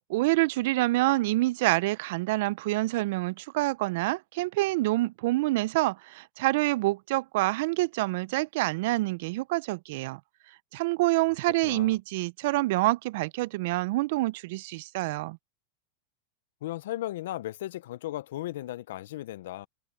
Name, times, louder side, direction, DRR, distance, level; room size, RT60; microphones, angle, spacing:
voice 1, 0.1-10.2 10.7-15.4, right 20 dB, 60° right, 0.4 m, -27 dB
voice 2, 11.6-12.0 16.6-19.7, left 14 dB, 75° left, 0.5 m, -36 dB
supercardioid pair, 140°, 0 cm